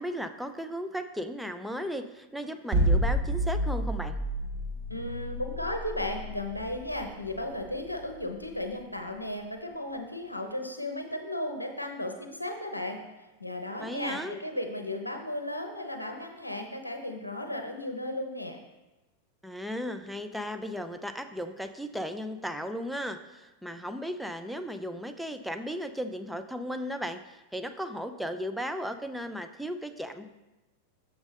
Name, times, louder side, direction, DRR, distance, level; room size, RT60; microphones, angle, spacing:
voice 1, 0.0-4.2 13.8-14.4 19.4-30.3, equal, ahead, 8 dB, 0.4 m, -35 dB
sound 1, 2.7-8.9, right 1 dB, 30° right, 1.9 m, -29 dB
voice 2, 4.9-13.0 13.4-18.6, left 1 dB, 85° left, 4 dB, 0.7 m, -35 dB
7.1 x 6.3 x 3.3 m, 1.0 s
figure-of-eight pair, 90°, 0 cm